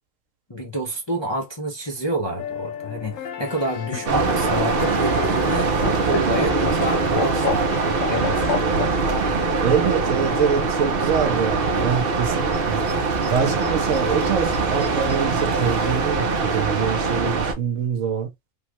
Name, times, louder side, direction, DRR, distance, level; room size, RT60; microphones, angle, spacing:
voice 1, 0.5-8.8, right 1 dB, 30° left, 0.5 m, -28 dB
sound 1, 2.4-8.6, left 7 dB, 70° left, 1.1 m, -35 dB
Laughter, 3.5-9.2 10.5-11.1, left 6 dB, 90° left, 1.3 m, -29 dB
sound 2, 4.1-17.5, right 4 dB, 50° right, 0.8 m, -22 dB
voice 2, 9.6-12.8 13.3-18.3, right 7 dB, 70° right, 1.2 m, -24 dB
3.4 x 2.4 x 3.0 m
omnidirectional pair, 1.4 m